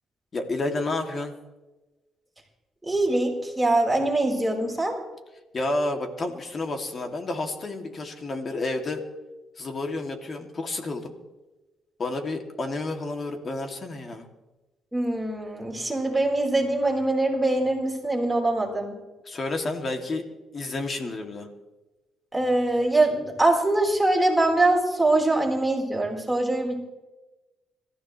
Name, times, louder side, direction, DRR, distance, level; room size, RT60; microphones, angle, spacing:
voice 1, 0.3-1.3 5.5-9.0 9.6-11.1 12.0-14.3 19.3-20.2 20.5-21.5, left 2 dB, 40° left, 4 dB, 2.6 m, -30 dB
voice 2, 2.8-5.0 14.9-19.0 22.3-26.8, right 2 dB, 10° right, 0 dB, 4.4 m, -23 dB
26.5 x 14.5 x 3.3 m, 1.1 s
cardioid pair, 90°, 0 cm